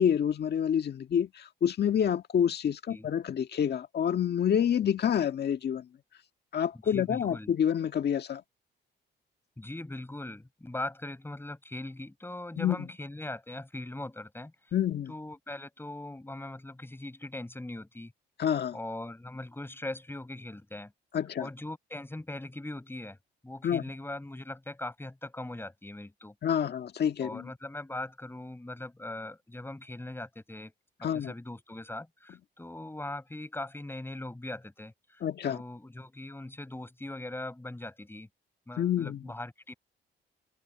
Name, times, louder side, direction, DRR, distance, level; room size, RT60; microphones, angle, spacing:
voice 1, 0.0-5.9 6.5-8.4 12.6-12.8 14.7-15.1 18.4-18.8 21.1-21.5 23.6-23.8 26.4-27.5 31.0-31.3 35.2-35.6 38.8-39.2, left 9 dB, 55° left, 1.8 m, -28 dB
voice 2, 6.8-7.5 9.6-14.7 15.1-18.1 18.7-20.9 21.4-23.2 23.4-26.3 27.2-30.7 31.0-38.3 38.7-39.7, left 1 dB, 10° left, 5.7 m, -40 dB
cardioid pair, 90°, 20 cm